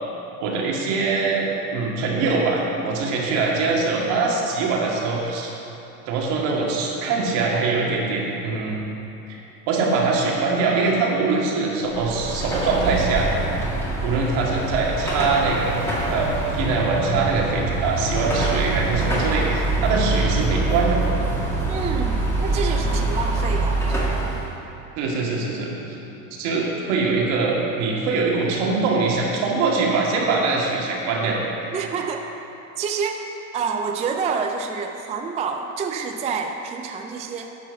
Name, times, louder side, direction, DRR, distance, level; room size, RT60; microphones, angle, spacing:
voice 1, 0.4-1.5 1.7-5.5 6.1-8.9 9.7-13.3 14.0-15.8 16.1-21.0 25.0-26.0 26.4-31.4, right 4 dB, 70° right, -2 dB, 2.1 m, -23 dB
Car passing by / Traffic noise roadway noise / Engine, 11.9-24.5, right 2 dB, 5° left, 1.8 m, -24 dB
voice 2, 21.7-24.2 31.7-32.2 32.8-33.2 33.5-37.5, right 5 dB, 15° right, 4 dB, 0.4 m, -28 dB
10.0 x 4.6 x 7.0 m, 3.0 s
supercardioid pair, 120°, 42 cm